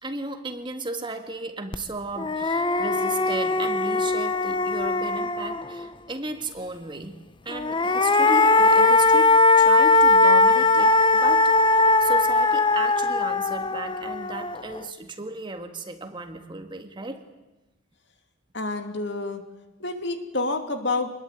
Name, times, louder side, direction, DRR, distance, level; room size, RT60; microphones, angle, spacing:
voice 1, 0.0-7.2 7.5-17.2, right 2 dB, 25° right, 6 dB, 1.8 m, -35 dB
sound 1, 1.7-1.8 2.2-5.9 7.5-14.8, left 3 dB, 25° left, 0.8 m, -20 dB
voice 2, 18.5-19.4 19.8-21.1, left 3 dB, 55° left, 6 dB, 2.6 m, -28 dB
25.5 x 21.0 x 9.1 m, 1.0 s
head